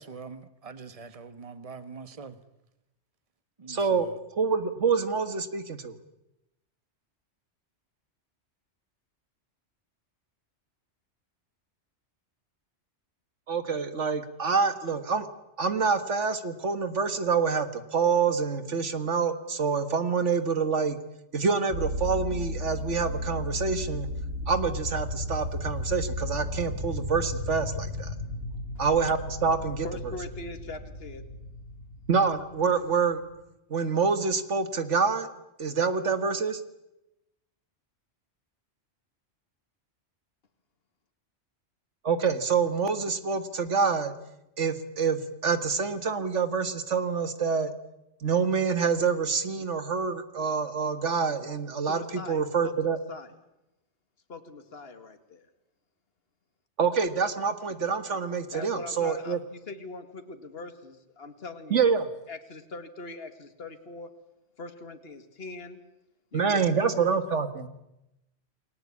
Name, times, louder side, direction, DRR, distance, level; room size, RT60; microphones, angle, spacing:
voice 1, 0.0-2.4 3.6-4.1, right 4 dB, 30° right, 11 dB, 1.4 m, -44 dB
voice 2, 3.7-5.9 13.5-15.3 15.6-21.0 21.3-24.1 24.5-28.1 28.8-29.9 32.1-33.2 33.7-35.3 35.6-36.6 42.0-44.1 44.6-47.7 48.2-53.0 56.8-59.4 61.7-62.1 66.3-67.7, right 5 dB, 90° right, 10 dB, 2.0 m, -26 dB
sound 1, 21.7-33.1, left 1 dB, 70° right, 4.9 m, -34 dB
voice 3, 29.8-31.3 51.9-53.3 54.3-55.5 58.5-61.9 62.3-64.1 64.6-65.8 66.3-67.2, left 2 dB, 55° left, 7 dB, 2.2 m, -42 dB
29.0 x 20.5 x 8.6 m, 0.91 s
omnidirectional pair, 1.2 m